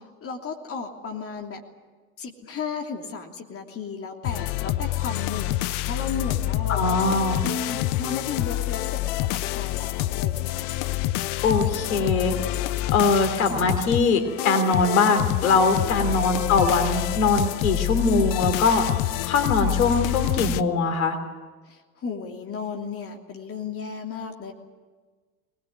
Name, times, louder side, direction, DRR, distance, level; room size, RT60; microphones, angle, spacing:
voice 1, 0.2-1.6 2.2-10.7 15.9-16.2 21.7-24.5, left 5 dB, 30° left, 2 dB, 3.0 m, -35 dB
sound 1, 4.2-20.6, left 16 dB, 45° left, 0.8 m, -27 dB
voice 2, 6.7-7.4 11.4-12.3 12.9-18.8 19.3-21.2, left 4 dB, 70° left, 7 dB, 3.3 m, -22 dB
21.5 x 20.5 x 9.6 m, 1.4 s
figure-of-eight pair, 70°, 44 cm